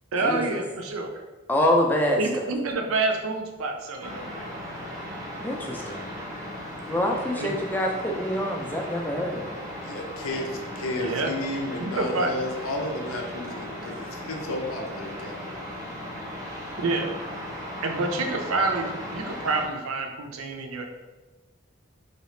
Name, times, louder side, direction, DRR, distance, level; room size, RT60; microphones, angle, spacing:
voice 1, 0.1-1.2 2.2-4.5 7.4-7.6 11.0-11.3 11.8-12.3 16.8-17.1 17.8-20.8, right 3 dB, 80° right, 4 dB, 0.5 m, -28 dB
voice 2, 1.5-2.4 5.4-6.0 6.9-9.5, left 1 dB, 10° left, 1 dB, 0.3 m, -25 dB
sound 1, 4.0-19.7, equal, 15° right, 0.7 m, -37 dB
voice 3, 9.8-15.6, left 1 dB, 80° left, 2 dB, 0.5 m, -33 dB
3.2 x 2.8 x 3.1 m, 1.2 s
head